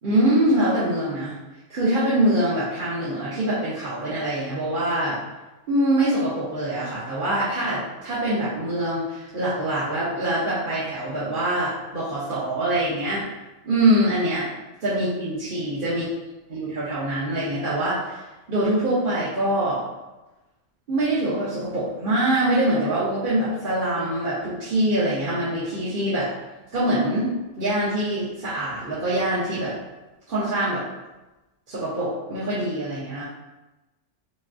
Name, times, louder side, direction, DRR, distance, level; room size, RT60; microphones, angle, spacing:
voice 1, 0.0-1.4 1.7-5.2 5.7-13.2 13.6-14.5 14.8-16.1 16.5-18.2 18.5-19.8 20.9-26.3 26.7-29.7 30.3-30.8 31.7-33.2, right 1 dB, 50° right, -11 dB, 1.1 m, -24 dB
5.1 x 2.3 x 2.6 m, 1.1 s
omnidirectional pair, 1.3 m